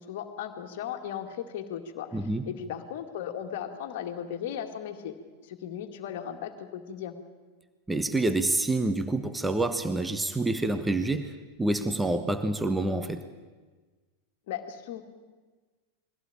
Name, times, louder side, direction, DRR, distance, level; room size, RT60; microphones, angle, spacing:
voice 1, 0.0-2.2 2.4-5.2 5.4-7.1 14.5-15.0, left 9 dB, 50° left, 5 dB, 2.2 m, -36 dB
voice 2, 2.1-2.5 7.9-13.3, right 2 dB, 10° right, 10 dB, 1.2 m, -27 dB
22.0 x 16.5 x 8.7 m, 1.4 s
figure-of-eight pair, 90°, 0 cm